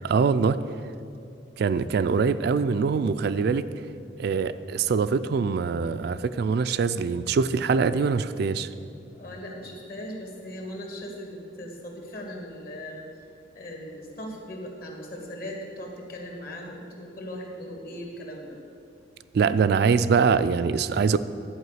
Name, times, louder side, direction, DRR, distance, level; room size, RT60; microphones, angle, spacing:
voice 1, 0.0-0.6 1.6-3.7 4.2-8.7 19.3-21.2, right 5 dB, 55° right, 12 dB, 0.3 m, -23 dB
voice 2, 9.1-13.1 13.5-18.6, equal, 50° left, 0 dB, 1.7 m, -39 dB
11.0 x 4.8 x 8.0 m, 2.5 s
head